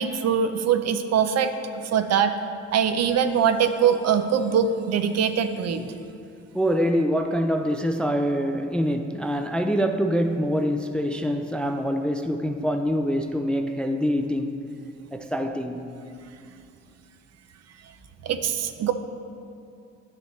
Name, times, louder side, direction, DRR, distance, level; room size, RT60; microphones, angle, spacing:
voice 1, 0.0-2.3 2.7-5.8 18.2-18.9, right 7 dB, 55° right, 0.6 m, -22 dB
voice 2, 6.5-14.5 15.1-15.9, equal, 5° left, 0.4 m, -25 dB
10.0 x 6.6 x 3.2 m
cardioid pair, 90°, 30 cm